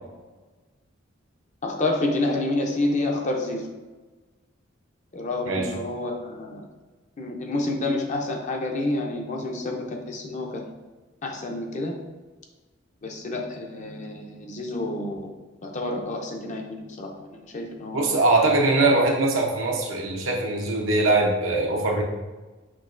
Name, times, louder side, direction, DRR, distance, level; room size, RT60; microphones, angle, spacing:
voice 1, 1.6-3.7 5.1-6.7 7.2-10.7 11.2-12.0 13.0-15.3 15.6-18.0, left 2 dB, 40° left, 2 dB, 0.6 m, -29 dB
voice 2, 17.9-22.0, right 2 dB, 85° right, 0 dB, 0.8 m, -22 dB
6.1 x 2.9 x 2.5 m, 1.2 s
head